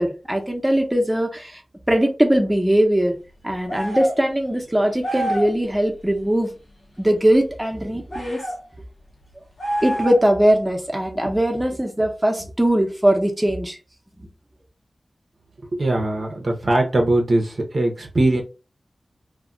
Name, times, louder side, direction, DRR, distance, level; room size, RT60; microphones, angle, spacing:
voice 1, 0.0-1.6 1.9-3.2 3.4-6.5 7.0-8.4 9.8-13.8 14.2-14.3, right 1 dB, 10° right, 3 dB, 0.7 m, -20 dB
sound 1, 3.7-4.2 5.0-5.6 8.1-8.6 9.6-10.4, right 1 dB, 75° left, 0.8 m, -27 dB
voice 2, 15.8-18.4, right 2 dB, 55° right, 1 dB, 0.6 m, -20 dB
2.2 x 2.2 x 3.7 m, 0.32 s
wide cardioid pair, 75°, 0 cm